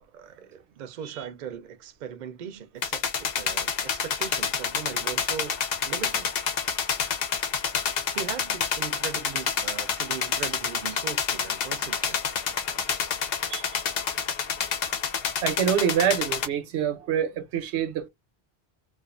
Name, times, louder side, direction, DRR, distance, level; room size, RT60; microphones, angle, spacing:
voice 1, 0.0-6.3 8.1-12.4, right 8 dB, 55° right, 0.6 m, -39 dB
sound 1, 2.8-16.5, left 7 dB, 65° left, 0.8 m, -28 dB
voice 2, 13.4-13.8 14.8-14.9 15.4-18.1, right 9 dB, 85° right, 1.0 m, -26 dB
2.4 x 2.4 x 2.4 m
omnidirectional pair, 1.1 m